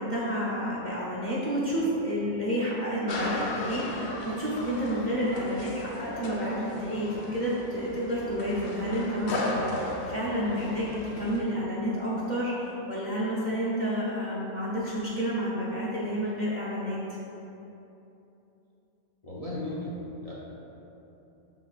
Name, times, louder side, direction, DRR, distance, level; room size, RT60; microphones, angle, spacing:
voice 1, 0.0-17.2, equal, 40° right, -7 dB, 0.9 m, -30 dB
sound 1, 3.1-11.4, left 1 dB, 85° left, 1.3 m, -36 dB
voice 2, 9.5-9.9 19.2-20.3, left 1 dB, 30° left, -8 dB, 0.9 m, -37 dB
11.0 x 4.1 x 2.5 m, 3.0 s
omnidirectional pair, 1.5 m